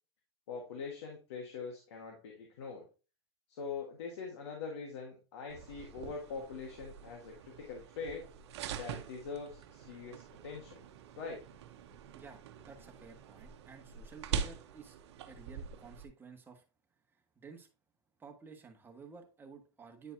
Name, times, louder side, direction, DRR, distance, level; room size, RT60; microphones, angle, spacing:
voice 1, 0.5-2.8 3.6-8.3 8.8-10.8 11.2-11.4, left 5 dB, 85° left, 1 dB, 1.5 m, -43 dB
sound 1, 5.5-16.0, right 7 dB, 80° right, 0.8 m, -44 dB
voice 2, 12.1-15.0 15.3-16.6 17.1-17.7 18.2-20.1, right 5 dB, 15° right, 2 dB, 1.4 m, -53 dB
9.4 x 4.5 x 2.7 m, 0.33 s
supercardioid pair, 120°, 14 cm